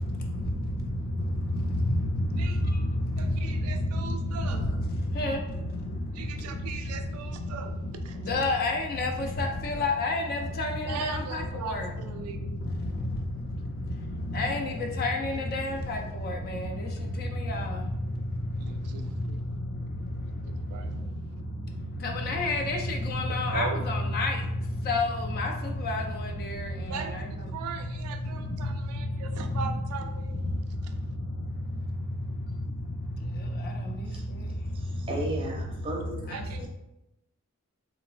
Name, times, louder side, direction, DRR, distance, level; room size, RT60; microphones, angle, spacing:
voice 1, 0.0-12.3 12.6-18.0 18.3-20.2 20.5-20.9 21.6-27.5 27.8-27.9 28.3-29.8 30.9-31.1 31.4-31.9 32.2-32.3 32.9-34.1 34.4-34.5 35.0-35.3 36.0-36.7, left 1 dB, 45° left, 0.4 m, -30 dB
voice 2, 3.2-4.6 6.1-7.7 8.1-8.2 10.8-12.4 18.6-19.1 20.7-21.0 23.5-23.8 26.9-27.1 27.5-30.4 36.3-36.7, right 6 dB, 80° right, 0.3 m, -39 dB
voice 3, 34.7-36.7, right 2 dB, 25° right, 0.5 m, -35 dB
3.1 x 2.0 x 2.4 m
head